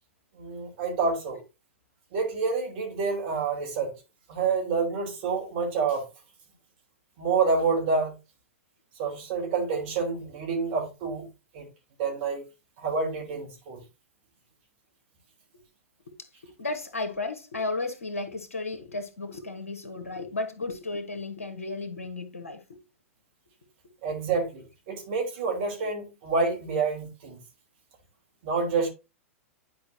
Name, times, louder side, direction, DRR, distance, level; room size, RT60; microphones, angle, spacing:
voice 1, 0.3-1.4 2.1-3.9 4.3-6.0 7.2-8.1 9.0-11.3 11.5-11.7 12.0-12.5 12.8-13.8 24.0-27.4 28.4-28.9, right 4 dB, 50° right, 3.5 m, -28 dB
voice 2, 16.4-22.8, left 3 dB, 75° left, 1.4 m, -34 dB
10.5 x 5.0 x 2.8 m
figure-of-eight pair, 100°, 8 cm